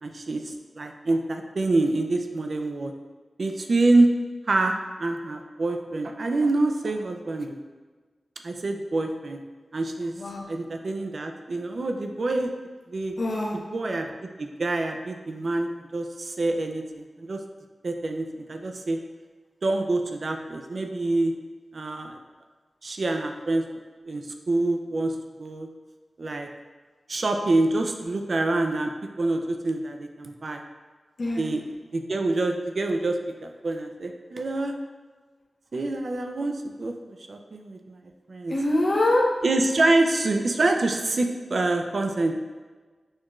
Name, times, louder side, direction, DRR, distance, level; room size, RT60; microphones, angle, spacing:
voice 1, 0.0-2.9 3.4-4.1 4.5-7.6 8.4-9.4 9.7-10.1 10.5-12.5 12.9-13.2 13.7-17.4 17.8-19.0 19.6-21.3 21.7-22.2 22.8-23.7 24.1-25.7 26.2-26.5 27.1-28.9 29.2-30.6 31.4-31.6 31.9-33.2 33.4-34.8 35.7-38.0 38.3-38.5 39.4-42.3, right 2 dB, 60° right, 4 dB, 0.4 m, -26 dB
voice 2, 10.1-10.5 13.2-13.6 31.2-31.6 38.5-39.2, left 1 dB, 60° left, -4 dB, 0.8 m, -24 dB
6.4 x 2.4 x 3.1 m, 1.4 s
wide cardioid pair, 75°, 0 cm